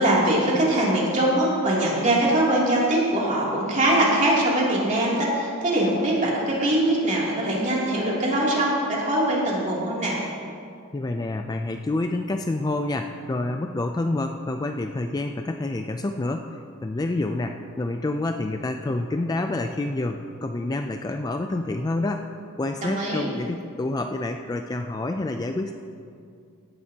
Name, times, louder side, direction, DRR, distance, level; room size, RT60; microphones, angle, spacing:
voice 1, 0.0-10.2 22.8-23.3, right 1 dB, 35° right, -5 dB, 2.8 m, -22 dB
voice 2, 10.9-16.5 16.8-22.3 22.6-25.7, left 2 dB, 15° left, 5 dB, 0.3 m, -28 dB
16.5 x 11.0 x 2.9 m, 2.3 s
head